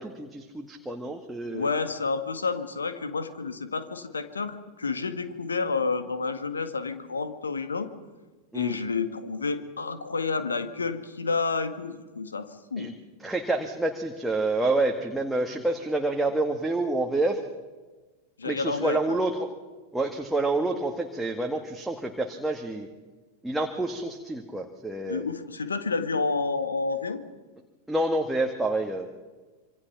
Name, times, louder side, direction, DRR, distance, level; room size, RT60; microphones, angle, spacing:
voice 1, 0.0-1.7 8.5-8.8 12.8-12.9 13.2-17.4 18.4-19.5 19.9-22.9 23.4-25.3 27.9-29.1, right 2 dB, 5° right, 2 dB, 1.9 m, -28 dB
voice 2, 1.5-7.9 8.5-12.9 18.4-19.0 25.1-27.2, left 4 dB, 75° left, 10 dB, 1.9 m, -30 dB
26.5 x 25.0 x 6.0 m, 1.3 s
figure-of-eight pair, 90°, 0 cm